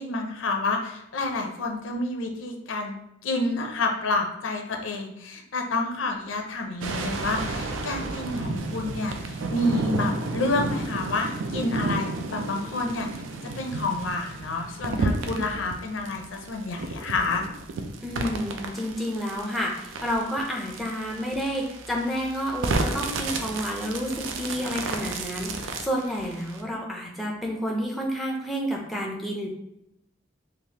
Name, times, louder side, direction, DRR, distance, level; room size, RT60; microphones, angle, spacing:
voice 1, 0.0-3.0 3.2-13.1 13.6-17.4, left 2 dB, 90° left, 3 dB, 0.5 m, -29 dB
sound 1, 6.8-26.6, right 3 dB, 85° right, 0.4 m, -32 dB
voice 2, 18.0-29.5, equal, ahead, -2 dB, 0.4 m, -30 dB
3.3 x 2.4 x 2.8 m, 0.80 s
head